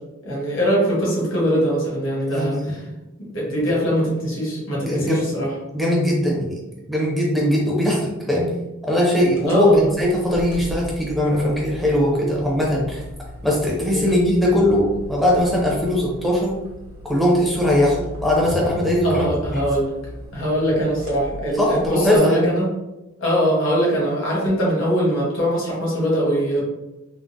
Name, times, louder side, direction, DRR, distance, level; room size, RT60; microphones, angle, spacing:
voice 1, 0.2-2.8 3.3-5.5 9.5-9.9 13.9-14.0 19.0-19.9 20.3-22.7 23.2-26.6, equal, 65° left, -4 dB, 1.1 m, -22 dB
voice 2, 2.3-2.8 3.6-3.7 4.8-5.2 5.7-6.6 6.9-8.5 8.8-13.0 13.4-16.6 17.0-19.3 19.5-19.7 21.6-22.5, left 1 dB, ahead, -4 dB, 0.6 m, -20 dB
sound 1, 9.3-22.2, equal, 80° right, 0.8 m, -37 dB
3.6 x 2.1 x 2.5 m, 0.98 s
head